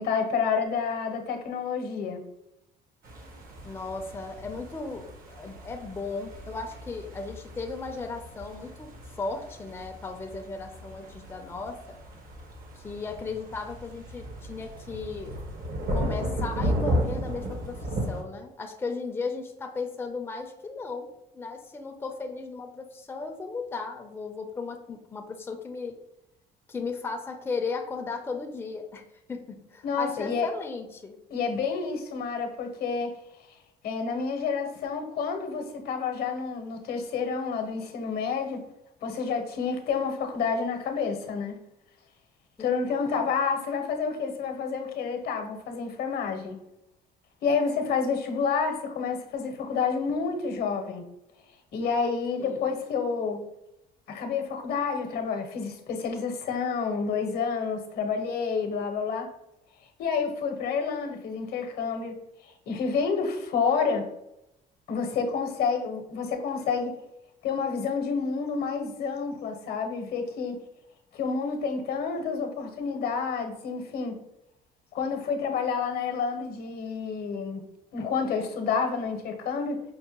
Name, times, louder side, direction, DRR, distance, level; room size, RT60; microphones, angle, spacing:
voice 1, 0.0-2.2 29.8-30.5 31.3-33.1 33.8-38.6 39.0-41.6 42.6-46.6 47.4-51.0 51.7-53.4 54.1-59.3 60.0-64.1 64.9-66.9 67.4-70.6 71.1-74.2 74.9-77.6 77.9-79.8, left 5 dB, 65° left, 6 dB, 0.8 m, -29 dB
sound 1, 3.0-18.2, equal, 60° right, 0.9 m, -35 dB
voice 2, 3.6-8.9 9.2-12.0 12.7-15.4 15.9-26.0 26.7-29.0 29.3-31.2 42.6-43.3 52.4-52.7, left 4 dB, 15° left, 3 dB, 0.5 m, -36 dB
5.4 x 2.1 x 2.9 m, 0.84 s
cardioid pair, 110°, 17 cm